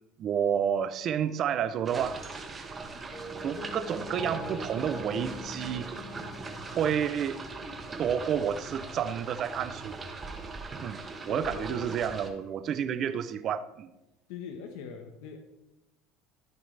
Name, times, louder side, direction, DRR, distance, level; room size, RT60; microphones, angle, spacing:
voice 1, 0.2-2.3 3.4-5.9 6.7-7.4 8.0-10.0 10.8-11.0 11.2-13.9, right 8 dB, 35° right, 0.6 m, -30 dB
sound 1, 1.8-12.3, right 3 dB, 20° right, 1.3 m, -41 dB
sound 2, 3.1-9.3 9.9-10.0, left 1 dB, 15° left, 1.7 m, -43 dB
voice 2, 11.3-11.9 14.3-15.4, left 5 dB, 80° left, 1.2 m, -41 dB
14.0 x 9.2 x 3.4 m
cardioid pair, 160°, 0 cm